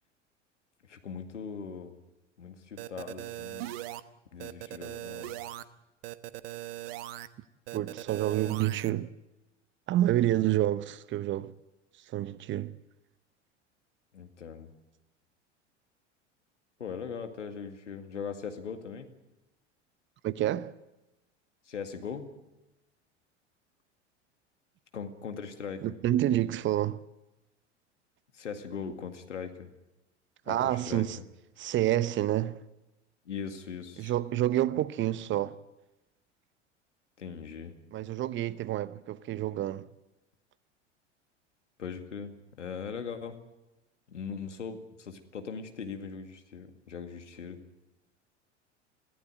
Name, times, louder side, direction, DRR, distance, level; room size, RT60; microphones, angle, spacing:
voice 1, 0.9-1.9 2.4-3.7 4.3-5.4 14.1-14.7 16.8-19.1 21.7-22.3 24.9-25.9 28.3-29.7 30.5-31.1 33.3-34.1 37.2-37.7 41.8-43.4 44.1-47.6, left 6 dB, 80° left, 2.2 m, -40 dB
sound 1, 2.8-4.0 4.4-5.6 6.0-7.3 7.7-8.9, right 15 dB, 55° right, 1.1 m, -40 dB
voice 2, 7.7-9.1 9.9-11.5 12.1-12.7 20.2-20.7 25.8-27.0 30.5-31.2 31.6-32.6 34.0-35.5 37.9-39.9, right 13 dB, 35° right, 0.8 m, -28 dB
21.5 x 15.5 x 9.2 m
figure-of-eight pair, 80°, 36 cm